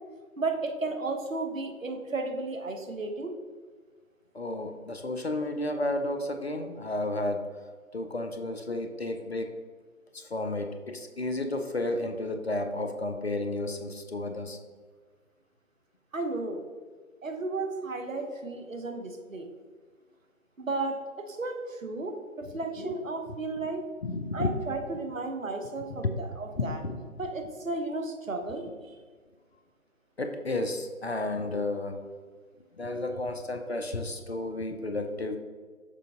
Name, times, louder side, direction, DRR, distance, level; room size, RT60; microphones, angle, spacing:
voice 1, 0.4-3.3 16.1-16.6 17.2-19.5 20.6-23.8 24.3-26.8 27.2-28.9, right 3 dB, 65° right, 5 dB, 0.9 m, -34 dB
voice 2, 4.3-7.5 7.9-9.5 10.1-14.6 22.8-22.9 23.6-23.7 24.0-24.5 25.6-25.7 26.0-26.1 26.6-27.0 30.2-32.0 32.8-35.4, left 2 dB, 50° left, 6 dB, 0.6 m, -32 dB
6.7 x 3.9 x 3.6 m, 1.5 s
figure-of-eight pair, 155°, 42 cm